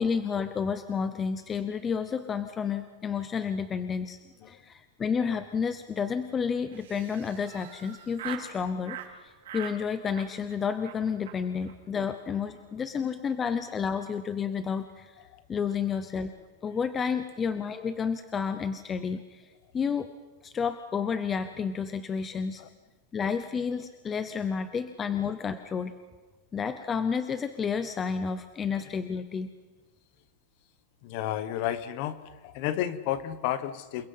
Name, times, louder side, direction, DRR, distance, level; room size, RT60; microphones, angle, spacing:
voice 1, 0.0-15.1 15.5-16.3 16.6-19.5 19.7-20.1 20.4-22.6 23.1-25.9 26.5-29.5, left 6 dB, 15° left, 10 dB, 0.7 m, -31 dB
Laughter, 6.7-8.5 8.8-9.1 9.4-9.8 10.1-10.5 10.8-11.0 11.3-11.4 11.6-11.7 12.0-12.1 12.4-12.7, right 11 dB, 85° right, 4.4 m, -42 dB
voice 2, 31.0-34.1, left 11 dB, 40° left, 14 dB, 1.2 m, -32 dB
28.5 x 22.0 x 5.7 m, 1.3 s
supercardioid pair, 180°, 0 cm